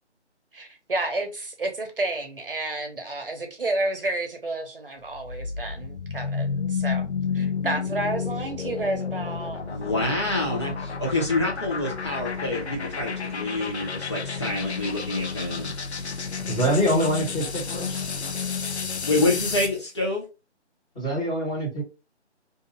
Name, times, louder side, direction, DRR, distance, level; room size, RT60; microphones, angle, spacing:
voice 1, 0.5-7.0 7.3-9.8, right 2 dB, 50° right, 0.9 m, -30 dB
sound 1, 5.1-19.8, left 5 dB, 65° left, 0.7 m, -31 dB
voice 2, 9.6-15.7 19.1-20.2, left 2 dB, 25° left, 0.8 m, -27 dB
voice 3, 16.4-18.1 20.9-21.8, equal, 5° left, 1.4 m, -25 dB
2.6 x 2.6 x 3.8 m
figure-of-eight pair, 155°, 35 cm